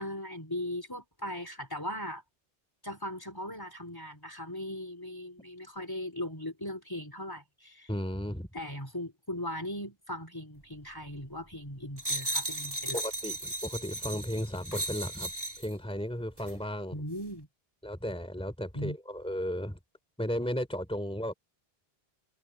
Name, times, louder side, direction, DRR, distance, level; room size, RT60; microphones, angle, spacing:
voice 1, 0.0-2.2 2.8-7.9 8.5-13.0 16.9-17.5 18.7-19.0, left 1 dB, 20° left, 3.7 m, -38 dB
voice 2, 7.9-8.5 12.9-17.0 17.8-19.8 20.2-21.3, equal, 5° left, 3.0 m, -35 dB
sound 1, 12.0-15.7 16.4-16.6, right 1 dB, 25° right, 3.4 m, -35 dB
omnidirectional pair, 1.0 m